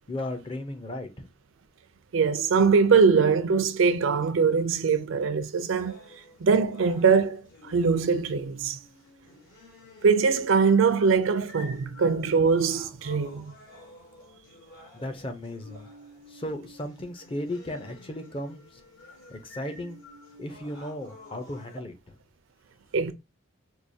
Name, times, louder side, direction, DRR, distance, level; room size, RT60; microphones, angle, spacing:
voice 1, 0.1-1.3 14.9-15.9 16.3-18.6 19.3-20.0 20.4-21.9, left 1 dB, 25° left, 0.5 m, -35 dB
voice 2, 2.1-6.0 6.4-8.8 10.0-13.5 22.9-23.1, right 5 dB, 70° right, 0.4 m, -22 dB
sound 1, 5.8-21.8, left 2 dB, 70° left, 1.8 m, -50 dB
4.6 x 2.3 x 2.6 m
head